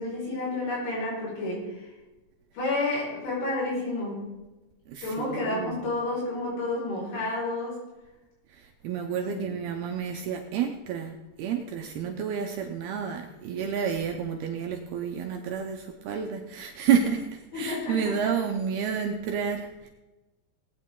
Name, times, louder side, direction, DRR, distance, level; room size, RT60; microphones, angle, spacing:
voice 1, 0.0-1.9 2.5-4.3 5.0-7.8 9.1-9.5 17.5-18.1, left 2 dB, 75° left, -5 dB, 7.7 m, -30 dB
voice 2, 4.9-5.8 8.5-11.1 11.4-19.9, right 7 dB, 75° right, 3 dB, 2.4 m, -30 dB
19.0 x 9.5 x 3.7 m, 1.1 s
omnidirectional pair, 5.4 m